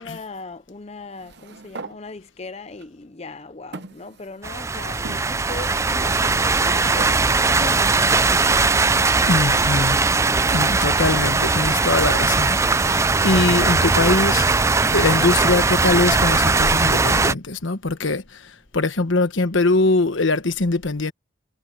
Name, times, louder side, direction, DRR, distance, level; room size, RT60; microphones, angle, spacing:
voice 1, 0.0-7.1 7.4-8.9, left 3 dB, 30° left, 0.6 m, -38 dB
sound 1, 1.1-2.0 2.8-2.9 3.7-4.6 5.0-5.2 6.1-7.2, right 3 dB, 55° right, 0.8 m, -38 dB
sound 2, 4.4-17.3, right 3 dB, 15° right, 0.4 m, -19 dB
Truck, 7.5-20.2, equal, 5° left, 1.4 m, -47 dB
voice 2, 9.3-10.0 10.5-21.1, left 3 dB, 70° left, 1.3 m, -22 dB
head